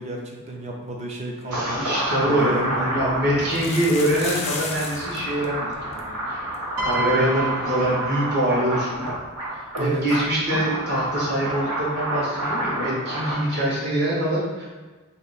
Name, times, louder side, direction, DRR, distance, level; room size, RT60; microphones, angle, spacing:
voice 1, 0.0-3.3 9.8-10.0, right 1 dB, 30° right, 0 dB, 0.5 m, -32 dB
voice 2, 1.4-6.0 6.2-6.6 6.8-9.0 9.8-14.7, right 1 dB, 50° right, -6 dB, 1.3 m, -24 dB
sound 1, 1.5-13.4, right 1 dB, 90° right, 1.1 m, -29 dB
sound 2, 1.8-1.9 2.2-2.3 3.4-5.2 5.4-5.5 5.7-6.0 6.5-6.6 6.9-7.0 9.1-9.2, left 4 dB, 30° left, 0.4 m, -33 dB
Piano, 6.8-9.1 10.2-10.4, right 4 dB, 70° right, 0.7 m, -31 dB
2.9 x 2.8 x 4.1 m, 1.3 s
head